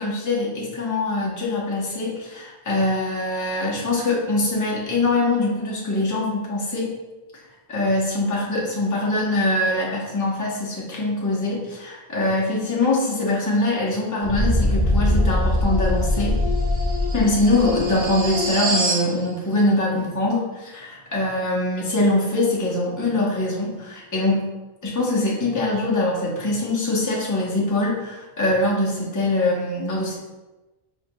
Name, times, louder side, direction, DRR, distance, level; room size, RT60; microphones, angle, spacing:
voice 1, 0.0-6.9 7.7-16.4 17.1-24.5 24.8-30.2, left 2 dB, 20° left, -5 dB, 0.8 m, -23 dB
sound 1, 14.2-19.1, left 1 dB, 85° right, 1.4 m, -22 dB
4.4 x 3.7 x 2.3 m, 1.1 s
omnidirectional pair, 1.1 m